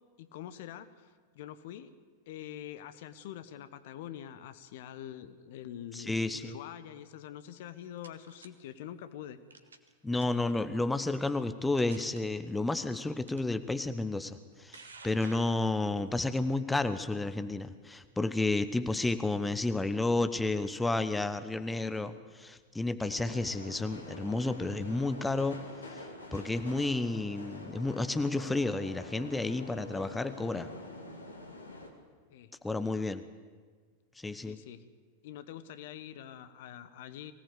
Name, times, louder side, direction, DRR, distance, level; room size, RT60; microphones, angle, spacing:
voice 1, 0.2-1.9 2.3-9.4 32.3-33.1 34.4-34.9 35.2-37.3, left 11 dB, 55° left, 12 dB, 1.2 m, -45 dB
voice 2, 5.9-6.6 10.0-25.6 26.3-30.7 32.6-33.2 34.2-34.6, left 2 dB, 10° left, 11 dB, 1.0 m, -31 dB
sound 1, 7.6-8.5 9.5-9.9 10.2-10.5 11.2-11.3 11.7-12.2 13.3-13.4 14.3-16.1, right 4 dB, 75° right, 1.6 m, -52 dB
sound 2, 23.0-31.9, left 2 dB, 80° left, 2.7 m, -46 dB
23.5 x 17.5 x 8.2 m, 1.5 s
figure-of-eight pair, 90°, 0 cm